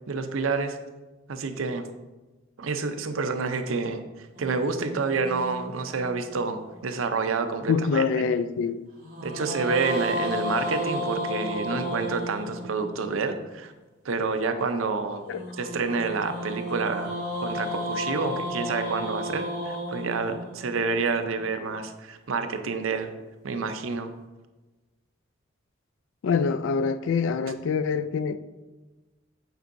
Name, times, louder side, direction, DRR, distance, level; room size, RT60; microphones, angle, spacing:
voice 1, 0.1-0.8 1.3-1.9 2.6-8.3 9.2-13.7 14.0-15.2 15.5-17.1 17.4-23.1 23.4-24.1, right 4 dB, 85° right, 0.6 m, -28 dB
sound 1, 4.3-6.7 9.0-13.2 15.3-21.5, equal, 45° right, 1.9 m, -33 dB
voice 2, 7.7-8.9 15.3-15.4 26.2-28.4, left 5 dB, 70° left, 0.3 m, -25 dB
8.0 x 4.6 x 2.6 m
head